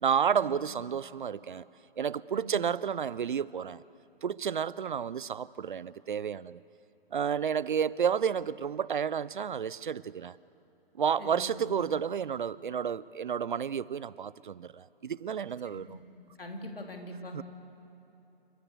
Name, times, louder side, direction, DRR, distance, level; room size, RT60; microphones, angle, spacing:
voice 1, 0.0-1.6 2.0-3.8 4.2-6.6 7.1-10.4 11.0-16.0 17.3-17.4, right 7 dB, 55° right, 0.5 m, -31 dB
voice 2, 11.2-11.8 15.7-15.9 16.4-17.3, left 1 dB, 70° left, 3.3 m, -43 dB
29.5 x 13.5 x 8.2 m
figure-of-eight pair, 125°, 29 cm